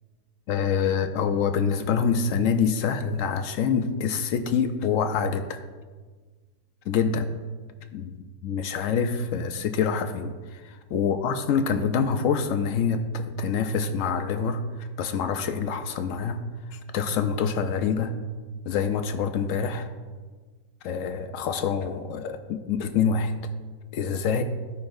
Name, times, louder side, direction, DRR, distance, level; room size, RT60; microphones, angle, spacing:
voice 1, 0.5-5.6 6.9-7.3 7.9-8.2 8.4-16.4 16.7-18.1 18.7-19.9 20.8-23.3 23.9-24.4, left 6 dB, 75° left, 8 dB, 0.7 m, -26 dB
14.5 x 5.5 x 2.6 m, 1.4 s
omnidirectional pair, 1.8 m